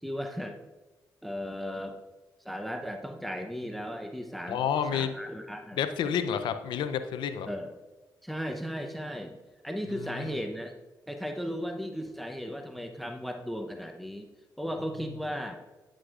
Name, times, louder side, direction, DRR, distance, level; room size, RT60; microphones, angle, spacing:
voice 1, 0.0-0.6 1.2-2.0 2.4-4.6 4.9-5.8 7.5-7.7 8.2-9.4 9.6-10.7 11.1-14.3 14.6-15.6, equal, ahead, 5 dB, 0.7 m, -36 dB
voice 2, 4.5-5.1 5.8-7.5 10.0-10.3, left 8 dB, 85° left, 10 dB, 0.5 m, -30 dB
10.0 x 6.3 x 2.4 m, 1.2 s
supercardioid pair, 50°, 8 cm